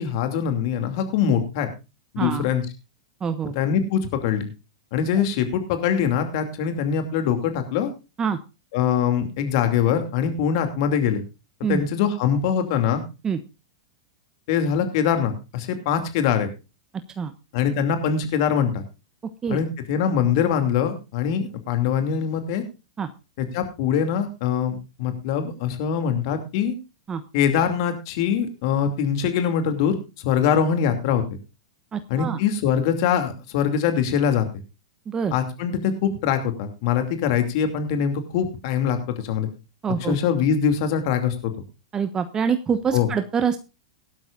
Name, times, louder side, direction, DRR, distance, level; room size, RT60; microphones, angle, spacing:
voice 1, 0.0-1.7 2.1-2.7 3.6-4.5 4.9-7.9 8.7-11.2 11.7-13.0 14.5-16.5 17.5-18.8 19.5-22.6 23.4-26.7 27.3-31.2 32.1-34.5 35.3-39.5 40.0-41.5 42.9-43.1, left 8 dB, 60° left, 7 dB, 2.6 m, -23 dB
voice 2, 3.2-3.5 5.1-5.2 8.2-8.4 11.6-11.9 13.2-13.4 17.2-17.3 19.4-19.6 23.0-23.1 27.1-27.2 31.9-32.4 35.1-35.3 39.8-40.2 41.9-43.6, right 6 dB, 25° right, 9 dB, 1.1 m, -25 dB
17.5 x 12.5 x 2.5 m, 0.28 s
hypercardioid pair, 115°, 3 cm